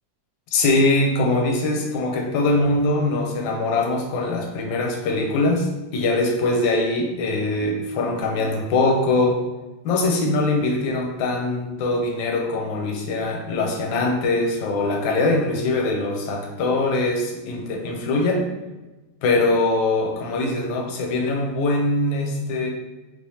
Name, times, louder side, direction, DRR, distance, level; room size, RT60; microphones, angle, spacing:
voice 1, 0.5-9.4 9.8-18.5 19.2-22.7, left 2 dB, 85° left, 1 dB, 1.4 m, -22 dB
3.4 x 3.0 x 2.7 m, 1.1 s
omnidirectional pair, 2.0 m